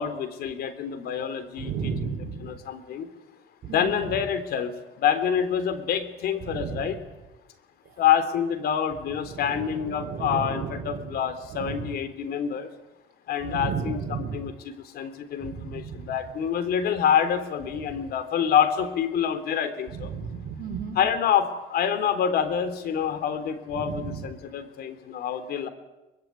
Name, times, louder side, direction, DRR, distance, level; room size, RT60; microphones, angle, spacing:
voice 1, 0.0-1.9 2.4-3.1 3.7-4.7 5.0-7.0 8.0-12.7 13.3-20.1 21.0-25.7, left 8 dB, 70° left, 11 dB, 3.6 m, -27 dB
voice 2, 1.6-2.5 3.6-4.2 6.4-6.9 9.2-11.1 11.5-11.9 13.4-14.4 15.4-16.1 17.8-18.0 19.9-21.0 23.7-24.3, right 6 dB, 60° right, 2 dB, 4.6 m, -34 dB
24.0 x 22.0 x 9.7 m, 1.0 s
cardioid pair, 110°, 17 cm